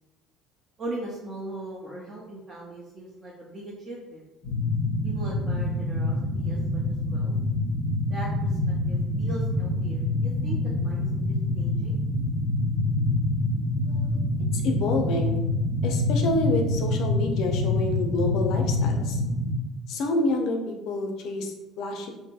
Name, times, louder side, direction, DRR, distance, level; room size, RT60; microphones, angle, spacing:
voice 1, 0.8-4.2 5.0-6.8 7.1-7.3 8.1-12.0, right 2 dB, 35° right, -6 dB, 0.5 m, -39 dB
sound 1, 4.4-19.5, left 2 dB, 15° left, 0.7 m, -26 dB
voice 2, 13.8-14.2 14.5-15.4 15.8-19.2 19.9-22.1, left 2 dB, 65° left, 3 dB, 0.4 m, -28 dB
2.7 x 2.5 x 2.3 m, 1.0 s
cardioid pair, 130°, 0 cm